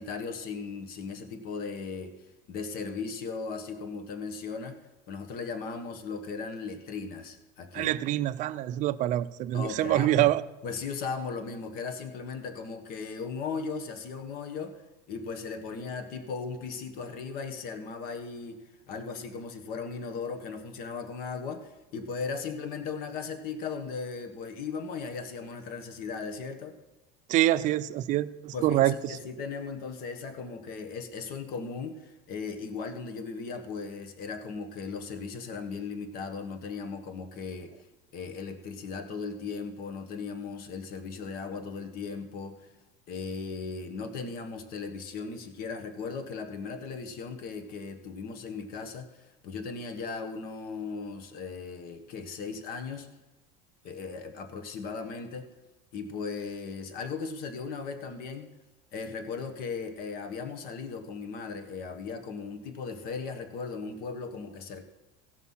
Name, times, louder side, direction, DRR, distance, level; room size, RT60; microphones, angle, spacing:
voice 1, 0.0-2.1 2.5-4.8 5.1-7.9 9.5-10.3 10.6-14.8 15.1-26.8 28.5-37.9 38.1-42.7 43.1-53.2 53.8-55.5 55.9-58.6 58.9-64.8, left 5 dB, 50° left, 7 dB, 1.4 m, -37 dB
voice 2, 7.7-10.4 27.3-29.2, right 14 dB, 40° right, 15 dB, 0.4 m, -26 dB
16.0 x 6.1 x 5.6 m, 1.1 s
cardioid pair, 140°, 20 cm